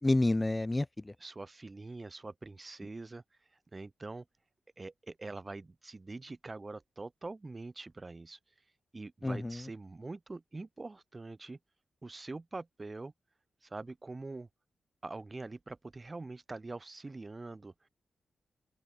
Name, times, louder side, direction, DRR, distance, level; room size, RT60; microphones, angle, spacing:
voice 1, 0.0-1.1 9.2-9.7, left 2 dB, 20° left, 2.6 m, -29 dB
voice 2, 1.2-3.2 3.7-4.2 4.8-8.4 8.9-11.6 12.0-13.1 13.6-14.5 15.0-17.9, right 3 dB, 30° right, 7.7 m, -44 dB
open air
cardioid pair, 85°, 0 cm